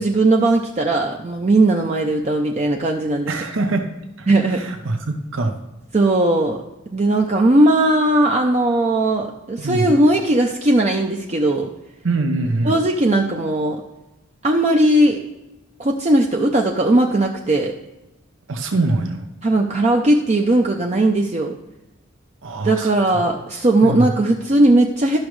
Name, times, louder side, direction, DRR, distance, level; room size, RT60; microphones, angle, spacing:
voice 1, 0.0-3.3 4.3-4.7 5.9-6.6 6.9-11.7 12.6-13.8 14.4-15.2 15.8-17.7 19.4-21.5 22.6-25.2, right 1 dB, 35° right, 1 dB, 0.5 m, -18 dB
voice 2, 3.3-3.9 4.2-5.6 9.6-9.9 12.0-12.7 18.5-19.3 22.4-23.2 23.8-24.1, right 2 dB, 75° right, 4 dB, 0.8 m, -23 dB
12.0 x 6.1 x 3.2 m, 0.99 s
head